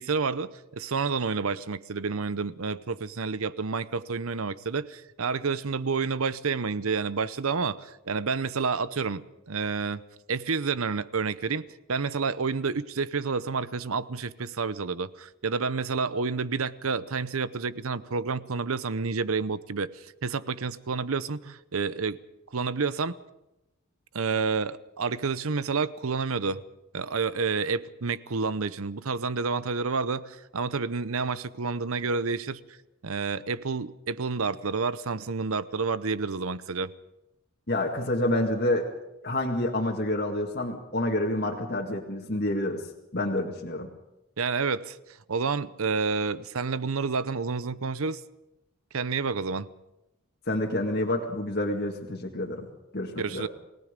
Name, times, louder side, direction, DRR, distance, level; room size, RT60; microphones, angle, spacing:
voice 1, 0.0-10.0 10.3-22.2 22.5-23.2 24.1-26.6 26.9-32.6 33.0-36.9 44.4-45.0 45.3-48.2 48.9-49.7 53.2-53.5, right 4 dB, 75° right, 16 dB, 0.8 m, -29 dB
voice 2, 37.7-38.9 39.2-42.8 43.1-43.9 50.5-52.7 52.9-53.5, left 1 dB, 45° left, -1 dB, 2.0 m, -28 dB
29.0 x 18.0 x 5.2 m, 0.92 s
head